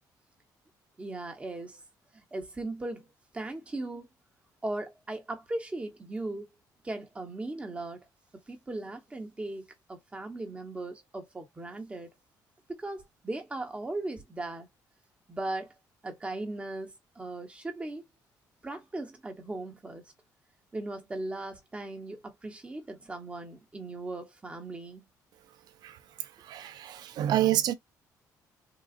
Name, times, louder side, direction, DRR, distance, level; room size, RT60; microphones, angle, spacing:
voice 1, 1.0-1.8 2.1-3.1 3.3-4.1 4.6-6.5 6.8-8.0 8.5-12.1 12.7-14.7 15.3-15.7 16.0-18.0 18.6-20.0 20.7-25.0, right 2 dB, 15° right, 1.1 m, -38 dB
voice 2, 26.5-27.7, right 12 dB, 70° right, 0.5 m, -27 dB
3.8 x 2.4 x 2.5 m
cardioid pair, 120°, 7 cm